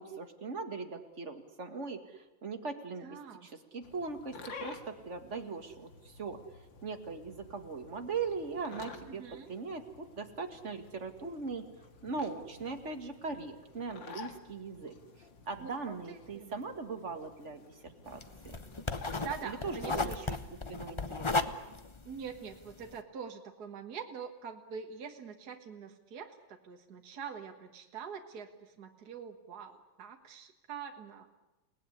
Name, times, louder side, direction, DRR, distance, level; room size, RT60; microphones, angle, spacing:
voice 1, 0.0-6.5 6.8-11.7 12.0-18.7 19.4-20.4 20.7-21.5, right 4 dB, 35° right, 6 dB, 2.2 m, -40 dB
voice 2, 3.0-3.5 9.1-9.5 15.6-16.6 18.9-20.2 22.1-31.3, right 6 dB, 50° right, 4 dB, 2.0 m, -45 dB
sound 1, 3.8-20.0, left 4 dB, 65° left, 2.5 m, -52 dB
sound 2, 18.1-22.9, left 3 dB, 35° left, 0.5 m, -35 dB
29.0 x 18.5 x 9.9 m, 1.1 s
omnidirectional pair, 2.2 m